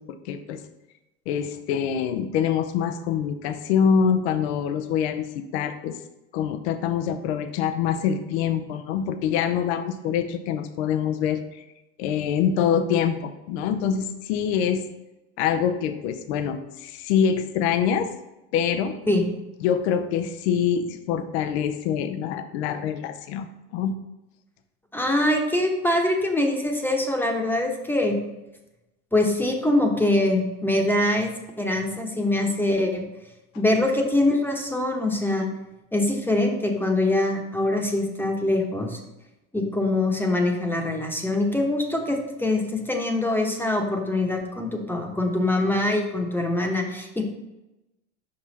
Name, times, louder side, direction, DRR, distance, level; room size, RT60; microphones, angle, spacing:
voice 1, 0.2-0.6 1.3-6.0 6.3-11.6 12.0-14.8 15.4-18.1 18.5-19.0 19.6-24.0, left 8 dB, 80° left, 9 dB, 0.7 m, -25 dB
voice 2, 24.9-28.2 29.1-33.0 33.6-35.5 35.9-39.0 39.5-47.3, left 1 dB, 5° left, 2 dB, 1.0 m, -23 dB
5.5 x 5.3 x 4.1 m, 0.97 s
supercardioid pair, 95°, 33 cm